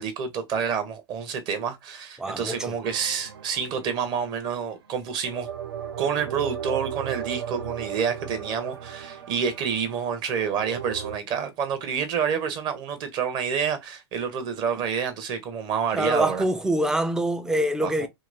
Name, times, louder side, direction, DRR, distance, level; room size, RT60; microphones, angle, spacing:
voice 1, 0.0-5.5 6.0-16.4 17.8-18.1, right 7 dB, 35° right, 0.8 m, -28 dB
voice 2, 2.2-2.7 15.9-18.1, right 1 dB, 5° right, 0.4 m, -25 dB
sound 1, 2.8-4.5 5.2-11.2, right 8 dB, 65° right, 0.5 m, -36 dB
2.9 x 2.9 x 2.5 m
figure-of-eight pair, 100°, 14 cm